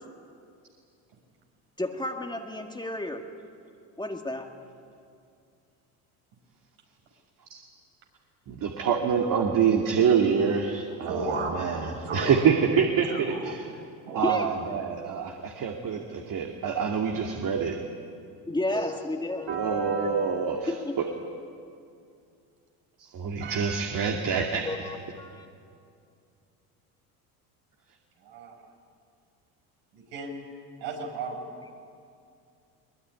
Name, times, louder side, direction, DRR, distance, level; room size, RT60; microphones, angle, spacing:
voice 1, 1.8-3.2 4.0-4.5 14.2-14.5 18.5-19.5 20.7-21.0 24.6-25.5, left 1 dB, 10° left, 3 dB, 2.1 m, -31 dB
voice 2, 8.5-13.7 14.1-17.8 19.5-21.1 23.0-24.7, right 6 dB, 45° right, 2 dB, 2.5 m, -26 dB
voice 3, 11.0-12.5 13.1-13.6 14.0-14.4 19.5-20.6 23.4-24.4 28.2-28.6 29.9-30.3 30.8-31.4, right 3 dB, 70° right, 2 dB, 5.9 m, -35 dB
22.5 x 20.5 x 9.7 m, 2.4 s
hypercardioid pair, 85°, 45 cm